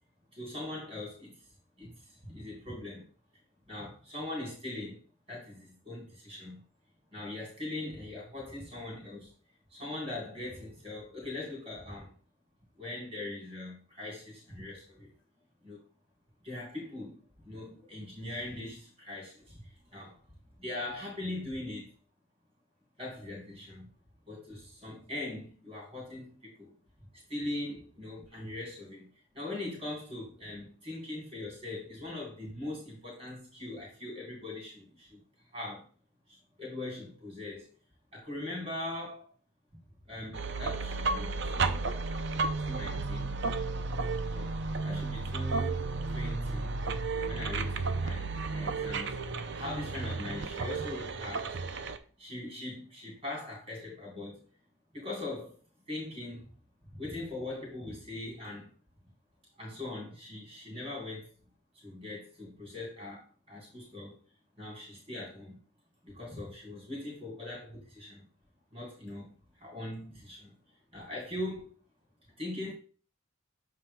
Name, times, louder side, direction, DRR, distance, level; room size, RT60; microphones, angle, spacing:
voice 1, 0.3-1.5 1.8-3.1 3.7-5.0 5.3-6.6 7.1-9.3 9.7-12.1 12.8-15.1 15.6-15.8 16.4-20.2 20.6-21.9 23.0-23.9 24.3-26.7 27.3-29.1 29.3-35.2 35.5-35.8 36.3-37.7 38.1-39.3 40.1-41.9 42.6-43.4 44.3-44.5 44.8-46.8 47.2-49.2 49.5-51.6 52.2-54.4 54.9-55.6 55.9-56.5 56.9-58.7 59.6-61.3 61.7-64.2 64.6-65.6 66.0-68.3 68.7-70.6 70.9-71.7 72.4-72.7, left 2 dB, 30° right, 4.2 m, -41 dB
sound 1, 40.3-52.0, right 3 dB, 55° right, 0.6 m, -33 dB
13.5 x 5.0 x 2.3 m
head